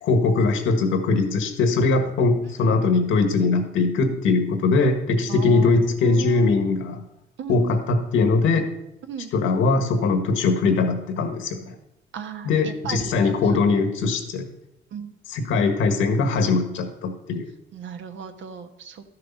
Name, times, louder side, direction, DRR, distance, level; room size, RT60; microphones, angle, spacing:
voice 1, 0.0-7.0 7.5-8.7 9.3-11.7 12.4-14.4 15.3-17.5, left 3 dB, 85° left, 7 dB, 1.6 m, -21 dB
voice 2, 5.3-6.6 7.4-7.8 9.1-9.3 12.1-13.6 14.9-15.1 17.7-19.0, right 7 dB, 70° right, 7 dB, 1.2 m, -36 dB
12.5 x 6.7 x 5.5 m, 0.83 s
cardioid pair, 90°, 20 cm